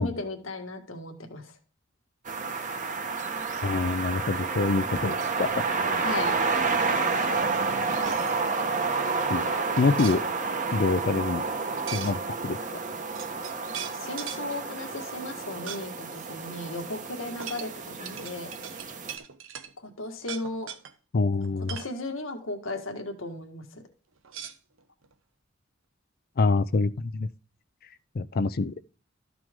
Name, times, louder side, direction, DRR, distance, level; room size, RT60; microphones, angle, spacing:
voice 1, 0.0-1.6 6.0-6.4 13.9-18.5 19.8-20.7 21.7-23.8, left 2 dB, 85° left, 1.8 m, -36 dB
sound 1, 2.2-19.2, right 4 dB, 40° right, 1.3 m, -30 dB
voice 2, 3.6-5.6 9.3-9.5 9.8-10.2 10.7-11.4 11.9-12.6 21.1-21.8 26.4-27.3 28.1-28.7, left 3 dB, 50° left, 0.5 m, -26 dB
sound 2, 7.9-8.4 9.7-10.2 11.9-12.2 12.8-12.9 13.2-14.4 15.7-15.8 16.2-16.3 17.4-19.7 20.2-20.9 21.4-21.9 24.2-25.1, right 8 dB, 90° right, 1.0 m, -39 dB
13.5 x 6.0 x 3.7 m
head